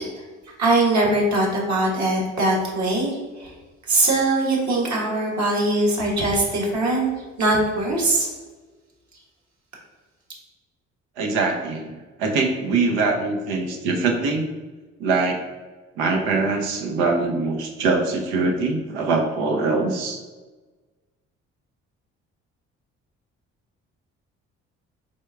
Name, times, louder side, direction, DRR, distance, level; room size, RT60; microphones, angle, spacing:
voice 1, 0.6-3.5 3.9-7.1 7.4-8.3, right 2 dB, 55° right, -2 dB, 1.4 m, -21 dB
voice 2, 11.2-14.4 15.0-15.4 16.0-20.2, right 3 dB, 85° right, 3 dB, 0.6 m, -23 dB
4.3 x 3.5 x 2.3 m, 1.3 s
hypercardioid pair, 50°, 33 cm